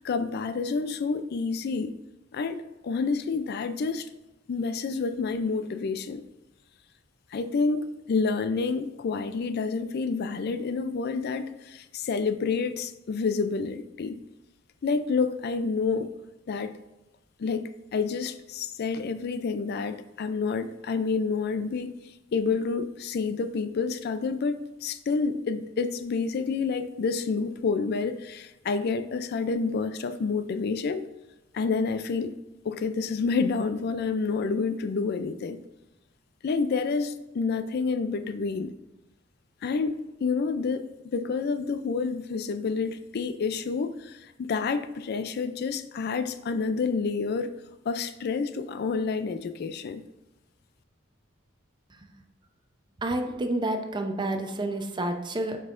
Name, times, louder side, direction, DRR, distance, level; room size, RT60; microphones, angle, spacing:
voice 1, 0.0-1.9 2.3-4.1 4.5-6.2 7.3-14.2 14.8-16.1 16.5-16.8 17.4-21.9 22.3-31.0 31.5-32.3 32.6-35.6 36.4-38.7 39.6-47.5 47.9-50.0, left 4 dB, 55° left, 0.4 m, -29 dB
voice 2, 53.0-55.6, right 1 dB, 25° right, 0.6 m, -29 dB
7.8 x 5.4 x 2.5 m
head